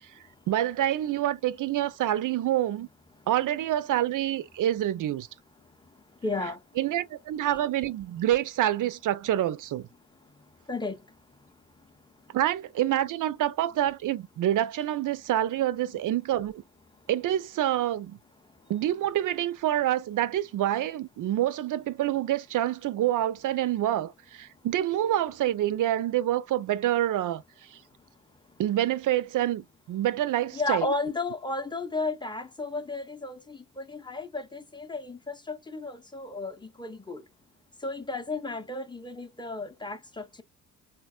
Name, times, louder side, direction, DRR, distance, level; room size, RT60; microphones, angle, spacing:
voice 1, 0.5-2.9 3.3-5.3 6.8-9.9 12.3-16.6 17.1-18.2 18.7-27.4 28.6-30.9, right 12 dB, 50° right, 0.5 m, -27 dB
voice 2, 6.2-6.6 10.7-11.0 30.5-37.2 37.8-40.4, left 3 dB, 10° left, 0.7 m, -33 dB
3.9 x 2.2 x 2.3 m
hypercardioid pair, 50°, 42 cm